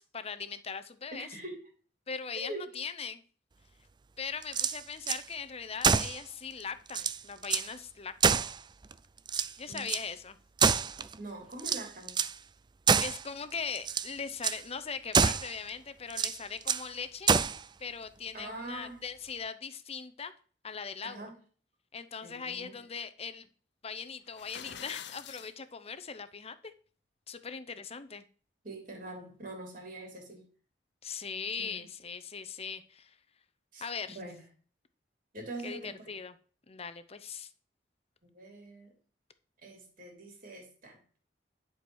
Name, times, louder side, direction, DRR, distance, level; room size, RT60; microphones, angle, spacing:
voice 1, 0.0-1.3 2.1-3.2 4.2-8.5 9.6-10.4 13.0-17.3 17.8-20.3 20.6-21.3 21.9-23.5 23.8-26.7 27.3-28.2 31.0-33.1 33.8-34.2 35.6-36.3 36.7-37.5, left 6 dB, 35° left, 11 dB, 0.8 m, -40 dB
voice 2, 1.1-1.6 2.3-2.7 9.7-9.9 11.1-12.2 18.3-19.0 21.0-21.4 22.2-22.8 28.6-30.4 31.6-31.8 33.7-34.4 35.3-36.1 38.2-38.9 39.6-41.0, right 2 dB, 50° right, 2 dB, 3.4 m, -44 dB
sound 1, 4.4-5.2 5.8-6.2 6.6-6.7 6.9-7.7 8.2-8.9 9.3-10.1 10.6-11.2 11.6-12.4 12.9-13.2 13.8-14.1 14.4-14.6 15.1-15.5 16.1-16.9 17.3-17.6, right 6 dB, 25° right, 0.4 m, -27 dB
sound 2, 24.3-25.5, left 8 dB, 70° left, 0.7 m, -45 dB
11.0 x 4.7 x 6.3 m, 0.43 s
head